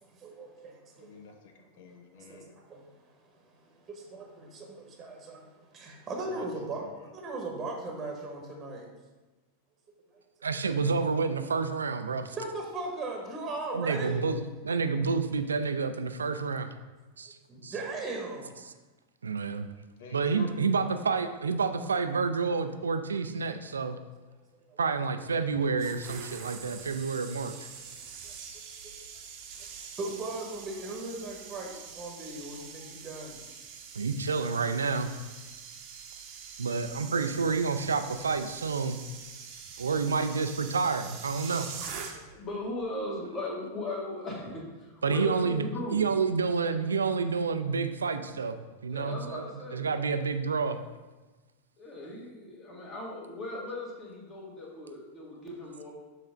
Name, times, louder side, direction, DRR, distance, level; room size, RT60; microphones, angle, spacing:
voice 1, 0.0-1.1 2.2-3.2 3.5-8.9 12.3-14.2 17.5-18.5 24.7-24.8 28.2-28.3 28.8-28.9 30.0-33.4, right 2 dB, 25° right, 1 dB, 1.1 m, -38 dB
voice 2, 1.0-2.5 6.3-7.1 20.0-20.5, left 7 dB, 55° left, 4 dB, 0.6 m, -48 dB
voice 3, 10.4-12.4 13.7-16.7 17.2-17.4 17.6-17.7 19.2-19.7 20.1-24.0 24.8-27.7 28.5-28.6 33.9-35.1 36.6-39.0 39.8-41.7 45.0-50.8, right 4 dB, 70° right, 9 dB, 0.4 m, -29 dB
sound 1, 25.5-42.5 42.7-43.0, right 6 dB, 40° right, 0.8 m, -44 dB
voice 4, 42.1-46.0 48.9-49.9 51.8-55.9, left 1 dB, 25° left, -2 dB, 1.6 m, -38 dB
6.7 x 3.2 x 5.0 m, 1.2 s
figure-of-eight pair, 90°, 0 cm